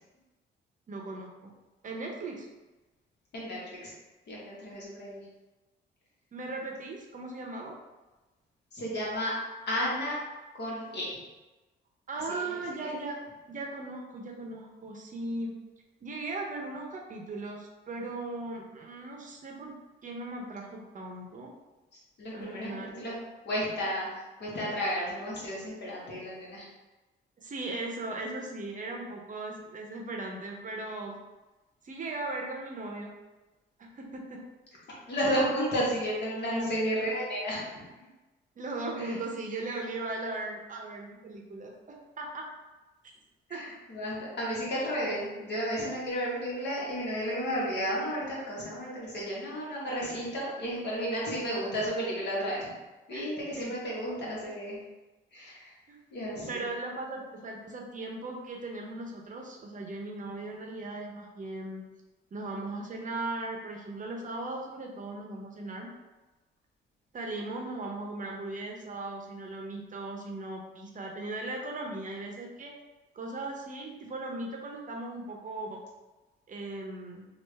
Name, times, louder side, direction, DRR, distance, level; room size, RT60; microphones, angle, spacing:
voice 1, 0.9-1.5 1.8-2.5 6.3-7.7 12.1-13.2 13.5-15.5 16.0-19.7 20.0-21.5 22.3-23.0 27.4-31.2 31.8-33.1 33.8-34.4 36.5-36.7 38.6-42.4 43.5-43.6 53.1-53.3 53.6-53.7 55.9-56.0 56.5-61.8 62.3-65.9 67.1-72.7 73.1-75.8 76.5-77.2, right 2 dB, 40° right, 0 dB, 0.7 m, -38 dB
voice 2, 3.3-3.9 4.3-5.2 8.7-9.4 9.7-10.2 10.5-11.2 12.3-12.9 21.9-22.7 23.0-23.1 23.4-26.7 34.9-38.1 39.0-39.2 43.5-52.7 53.1-54.8 55.3-55.7 56.1-56.7, equal, 60° left, -5 dB, 1.3 m, -33 dB
3.3 x 2.4 x 3.2 m, 1.1 s
cardioid pair, 90°, 20 cm